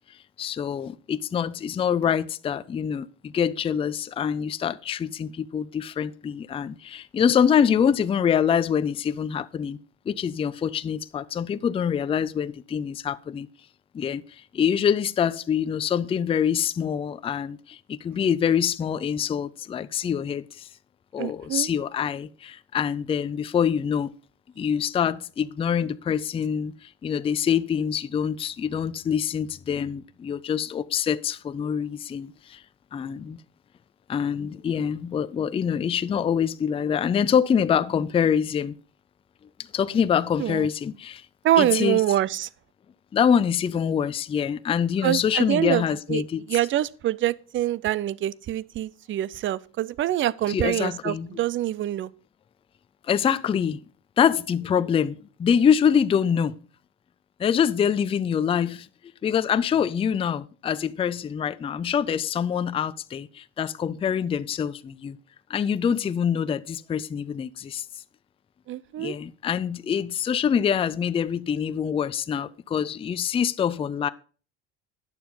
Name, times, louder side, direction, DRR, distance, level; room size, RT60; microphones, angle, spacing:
voice 1, 0.4-9.8 10.1-13.5 13.9-14.2 14.5-20.7 21.1-24.1 24.6-32.6 32.9-33.4 34.1-38.8 39.7-41.3 41.6-42.0 43.1-46.4 50.5-51.3 53.1-53.8 54.2-56.6 57.4-58.9 59.2-65.2 65.5-67.8 69.0-74.1, left 8 dB, 20° left, 0.4 m, -25 dB
voice 2, 21.2-21.7 40.4-40.7 41.4-42.5 45.0-46.2 46.5-52.1 68.7-69.2, right 13 dB, 40° right, 0.5 m, -25 dB
9.6 x 6.8 x 5.4 m
supercardioid pair, 95°, 32 cm